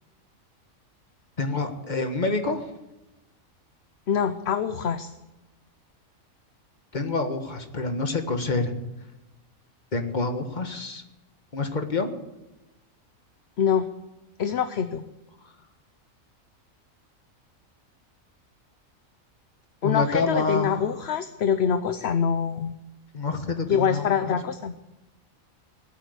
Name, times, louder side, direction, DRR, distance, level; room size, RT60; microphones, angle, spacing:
voice 1, 1.4-2.7 6.9-8.7 9.9-11.0 11.5-12.1 19.8-20.9 23.1-24.4, left 3 dB, 35° left, 6 dB, 1.7 m, -27 dB
voice 2, 4.1-5.1 13.6-13.9 14.4-15.0 19.8-22.7 23.7-24.7, left 7 dB, 55° left, 10 dB, 1.0 m, -25 dB
19.5 x 8.2 x 8.3 m, 0.99 s
omnidirectional pair, 1.4 m